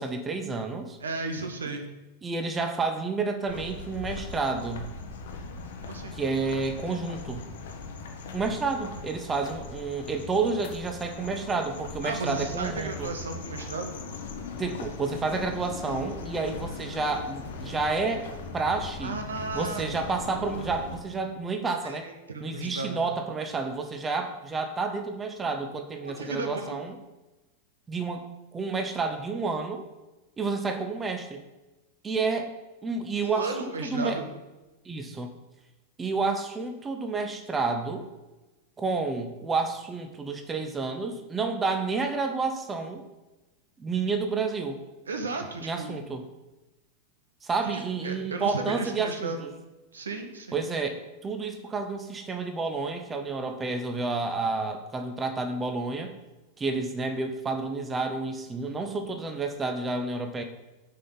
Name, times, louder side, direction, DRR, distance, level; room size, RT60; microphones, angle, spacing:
voice 1, 0.0-1.0 2.2-4.9 6.1-7.5 8.3-13.1 14.6-18.3 18.5-19.1 19.5-22.1 22.4-27.0 27.9-28.2 28.5-29.8 30.4-31.4 32.0-32.5 32.8-34.2 34.8-35.3 36.0-38.1 38.8-43.0 43.8-44.8 45.6-46.2 47.4-49.5 50.5-56.1 56.6-60.4, right 4 dB, 15° right, 6 dB, 0.8 m, -30 dB
voice 2, 1.0-1.8 5.8-6.1 12.0-14.0 19.0-19.9 21.8-23.1 26.0-26.8 33.2-34.3 45.1-46.0 47.6-49.4 49.9-50.6, right 3 dB, 70° right, 6 dB, 0.9 m, -34 dB
sound 1, 3.5-21.0, left 4 dB, 60° left, 1.0 m, -39 dB
6.6 x 5.4 x 5.8 m, 1.1 s
figure-of-eight pair, 90°, 0 cm